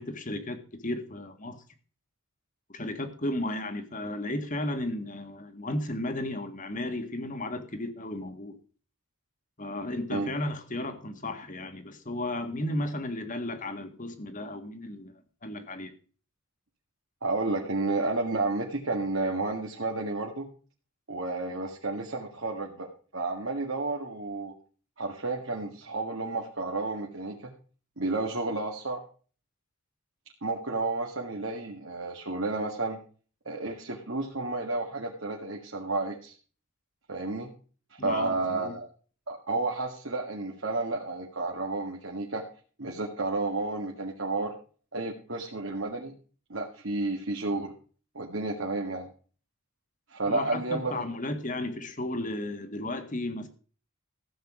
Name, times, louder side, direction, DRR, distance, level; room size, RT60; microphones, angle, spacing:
voice 1, 0.0-1.6 2.7-8.6 9.6-15.1 15.4-15.9 38.0-38.7 50.3-53.5, left 1 dB, 35° left, 1.7 m, -34 dB
voice 2, 17.2-20.5 21.1-24.5 25.0-27.5 28.0-29.0 30.4-33.0 33.5-36.3 37.1-37.5 37.9-38.9 39.3-42.4 42.8-44.6 44.9-46.1 46.5-47.7 48.2-49.1 50.1-51.0, right 3 dB, 60° right, 2.0 m, -31 dB
15.0 x 8.0 x 4.9 m
head